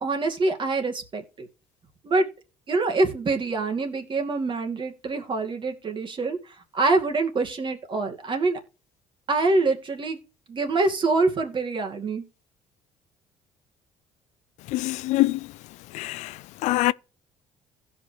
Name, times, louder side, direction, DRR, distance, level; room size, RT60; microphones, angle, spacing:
voice 1, 0.0-1.5 2.0-2.3 2.7-6.4 6.7-8.6 9.3-10.2 10.5-12.2, right 3 dB, 40° right, 2.3 m, -25 dB
voice 2, 14.7-15.5 15.9-16.9, left 18 dB, 75° left, 0.4 m, -24 dB
16.0 x 5.4 x 3.0 m
supercardioid pair, 75°, 12 cm